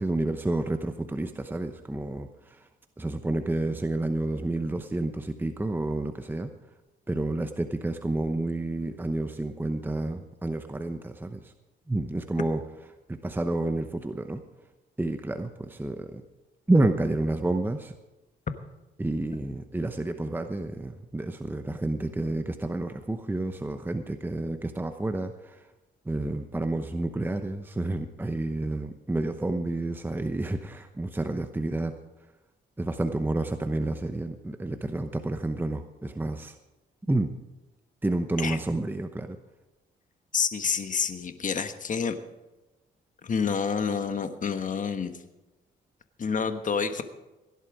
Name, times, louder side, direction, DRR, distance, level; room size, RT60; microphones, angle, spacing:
voice 1, 0.0-2.7 3.0-6.5 7.1-11.5 11.9-12.6 13.1-14.4 15.0-16.2 16.7-17.9 19.0-25.7 26.0-32.0 32.8-36.6 37.1-37.3 38.0-39.4, right 2 dB, 10° right, 7 dB, 0.9 m, -29 dB
voice 2, 40.3-42.2 43.2-45.2 46.2-47.0, left 6 dB, 40° left, 9 dB, 1.3 m, -28 dB
17.0 x 11.0 x 4.9 m, 1.0 s
cardioid pair, 90°, 20 cm